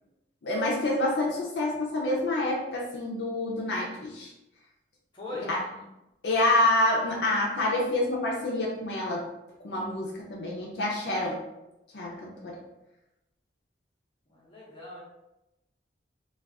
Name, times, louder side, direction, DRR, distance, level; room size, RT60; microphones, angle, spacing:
voice 1, 0.4-4.3 5.5-5.6 6.2-9.3 9.6-11.4 11.9-12.6, left 1 dB, 65° left, -3 dB, 0.5 m, -27 dB
voice 2, 5.1-5.5 14.3-15.0, left 2 dB, 30° left, -5 dB, 0.7 m, -39 dB
2.3 x 2.3 x 3.4 m, 0.93 s
head